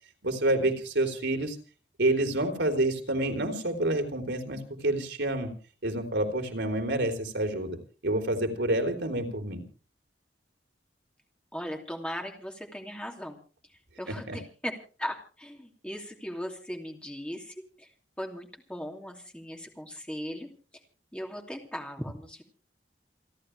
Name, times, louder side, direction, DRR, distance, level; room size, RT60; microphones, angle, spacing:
voice 1, 0.2-1.6 2.0-5.5 5.8-7.8 8.0-9.6 14.3-14.4, right 1 dB, 85° right, 5 dB, 3.7 m, -28 dB
voice 2, 11.5-13.4 13.7-17.9 18.2-20.5 21.1-22.4, equal, 5° left, 2 dB, 2.7 m, -38 dB
29.0 x 11.5 x 3.4 m, 0.38 s
head